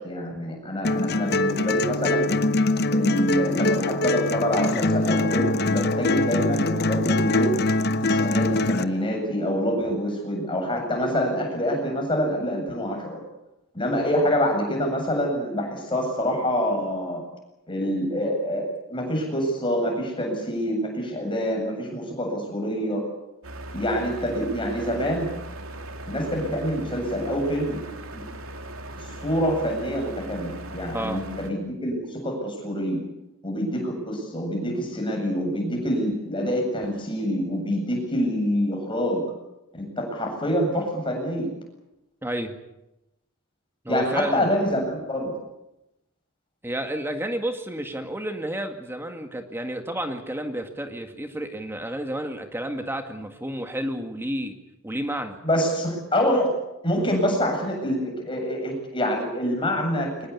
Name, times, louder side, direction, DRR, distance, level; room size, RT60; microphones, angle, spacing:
voice 1, 0.0-2.3 2.9-7.5 8.0-13.2 13.7-17.2 17.7-23.0 23.7-25.3 26.1-27.8 28.1-28.2 29.0-33.0 33.4-39.2 39.7-41.5 43.9-45.3 55.4-56.5 56.8-60.3, equal, 25° left, 2 dB, 7.8 m, -26 dB
sound 1, 0.8-8.8, left 2 dB, 50° left, 1.0 m, -23 dB
sound 2, 23.4-31.5, right 1 dB, 70° right, 2.7 m, -38 dB
voice 2, 30.9-31.2 42.2-42.5 43.9-44.5 46.6-54.6 54.8-55.4, right 1 dB, 10° right, 5 dB, 1.9 m, -31 dB
23.5 x 20.5 x 8.5 m, 0.92 s
head